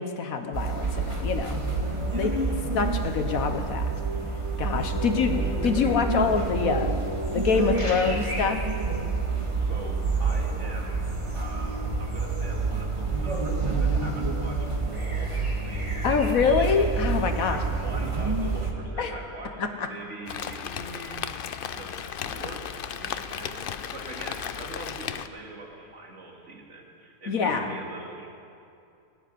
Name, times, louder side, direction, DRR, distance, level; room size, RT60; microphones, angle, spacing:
voice 1, 0.0-1.6 2.1-2.3 2.7-3.9 4.6-6.9 7.3-8.6 16.0-17.6 19.0-19.1 19.6-19.9 27.3-27.7, left 5 dB, 65° left, 6 dB, 1.3 m, -25 dB
sound 1, 0.5-18.7, right 3 dB, 20° right, 1.6 m, -28 dB
voice 2, 2.1-2.6 4.9-5.0 9.6-11.1 11.3-14.7 14.9-16.4 17.4-21.2 21.7-28.4, right 2 dB, 50° right, 0 dB, 2.4 m, -42 dB
sound 2, 7.8-8.5, left 1 dB, 35° left, 2.5 m, -38 dB
Rain, 20.3-25.3, left 8 dB, 85° left, 0.4 m, -35 dB
19.0 x 7.5 x 9.7 m, 2.5 s
omnidirectional pair, 1.6 m